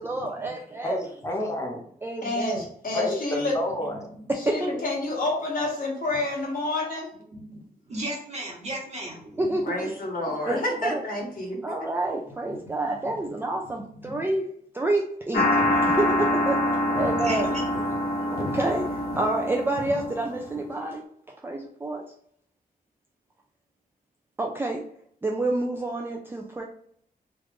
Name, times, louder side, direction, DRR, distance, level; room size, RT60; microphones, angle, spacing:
voice 1, 0.0-1.0 2.0-2.6 4.3-4.8 9.4-9.9 10.5-11.0 11.6-17.5 18.3-22.0 24.4-24.9 25.2-26.6, right 2 dB, 15° right, 0 dB, 0.3 m, -29 dB
voice 2, 0.8-1.9 2.9-4.1, left 1 dB, 20° left, 0 dB, 0.8 m, -29 dB
voice 3, 2.2-3.5 4.4-7.1 9.6-11.7, left 2 dB, 65° left, -2 dB, 1.2 m, -29 dB
voice 4, 7.3-7.6 7.9-9.4 12.5-12.6 13.7-14.2 17.2-18.2, right 1 dB, 45° right, -2 dB, 1.2 m, -36 dB
sound 1, 15.3-20.6, left 1 dB, 85° left, 0.7 m, -25 dB
3.0 x 2.4 x 3.3 m, 0.64 s
wide cardioid pair, 145°, 16 cm